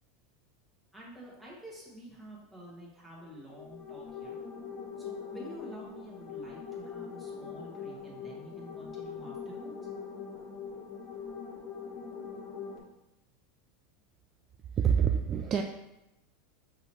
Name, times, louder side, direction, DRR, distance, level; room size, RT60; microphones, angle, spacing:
voice 1, 0.9-4.4 5.0-9.7, right 1 dB, 5° right, -5 dB, 1.3 m, -49 dB
sound 1, 3.3-12.8, left 6 dB, 40° left, 1.3 m, -42 dB
voice 2, 14.8-15.6, right 8 dB, 40° right, 3 dB, 0.3 m, -26 dB
5.8 x 2.8 x 3.0 m, 0.92 s
supercardioid pair, 115°, 0 cm